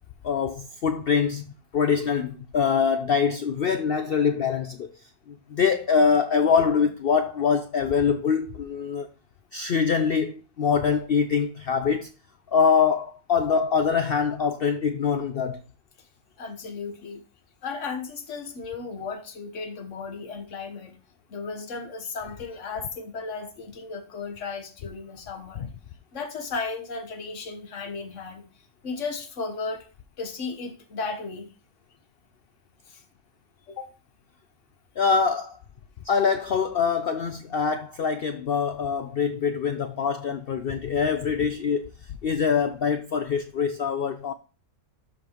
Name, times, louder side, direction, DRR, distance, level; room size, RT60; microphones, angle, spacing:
voice 1, 0.2-1.5 1.7-4.9 5.3-9.1 9.5-12.1 12.5-15.6 25.6-25.7 35.0-35.6 36.0-41.9 42.2-44.3, left 6 dB, 85° left, 0.5 m, -24 dB
voice 2, 16.4-17.2 17.6-21.0 21.3-25.7 26.1-28.4 28.8-29.9 30.2-31.5 32.9-33.0 33.7-33.9, left 4 dB, 55° left, 1.5 m, -35 dB
12.5 x 5.2 x 3.0 m
omnidirectional pair, 1.7 m